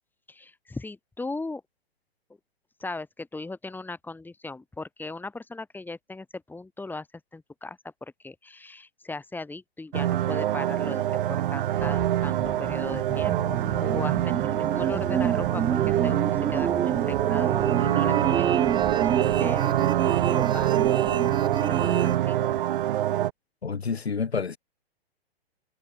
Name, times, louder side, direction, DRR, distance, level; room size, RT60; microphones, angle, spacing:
voice 1, 0.3-1.6 2.8-7.1 7.3-18.6 19.0-20.9 21.5-22.5, left 3 dB, 5° left, 6.4 m, -38 dB
sound 1, 9.9-23.3, right 12 dB, 60° right, 1.0 m, -25 dB
sound 2, 12.2-22.2, right 8 dB, 15° right, 1.4 m, -30 dB
voice 2, 23.6-24.6, left 5 dB, 85° left, 3.4 m, -28 dB
hypercardioid pair, 120°, 31 cm